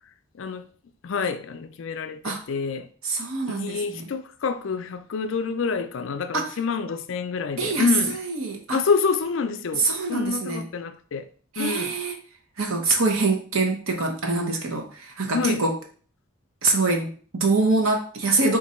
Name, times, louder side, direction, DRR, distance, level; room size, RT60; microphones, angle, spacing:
voice 1, 1.0-2.9 3.5-8.2 8.7-11.2 11.6-11.9 15.3-15.6, left 5 dB, 65° left, 0.4 m, -27 dB
voice 2, 3.0-4.0 6.3-6.5 7.6-8.8 9.8-10.7 11.5-12.2 12.6-15.8 16.6-18.6, right 3 dB, 80° right, 1.0 m, -24 dB
3.9 x 2.6 x 4.3 m
head